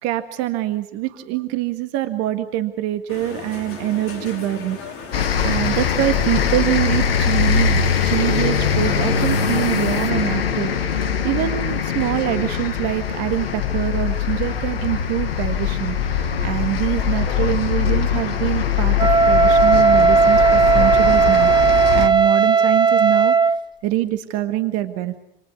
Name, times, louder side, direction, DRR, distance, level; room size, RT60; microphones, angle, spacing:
voice 1, 0.0-4.9 5.4-23.6 23.8-25.2, right 14 dB, 55° right, 9 dB, 1.8 m, -25 dB
sound 1, 3.1-10.1, left 5 dB, 50° left, 5.5 m, -35 dB
sound 2, 5.1-22.1, left 7 dB, 80° left, 1.8 m, -22 dB
Wind instrument woodwind instrument, 19.0-23.6, right 5 dB, 15° right, 0.8 m, -15 dB
27.5 x 27.5 x 4.7 m, 0.74 s
hypercardioid pair, 75°, 29 cm